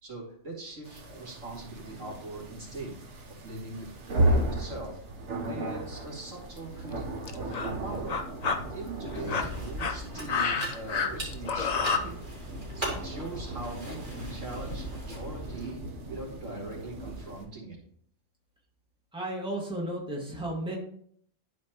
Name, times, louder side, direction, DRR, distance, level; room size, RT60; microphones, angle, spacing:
voice 1, 0.0-5.0 5.5-7.0 7.3-8.2 8.7-12.2 12.7-17.8, right 2 dB, 90° right, -4 dB, 2.8 m, -41 dB
sound 1, 0.8-17.5, right 1 dB, 70° right, 1.3 m, -35 dB
sound 2, 5.7-6.0 6.8-6.9 7.3-7.7 8.1-8.6 9.1-12.0, left 5 dB, 45° left, 0.6 m, -29 dB
sound 3, 9.1-15.7, equal, 40° right, 2.8 m, -39 dB
voice 2, 19.1-20.7, right 1 dB, 5° right, -3 dB, 1.8 m, -33 dB
11.5 x 4.5 x 3.0 m, 0.64 s
omnidirectional pair, 1.3 m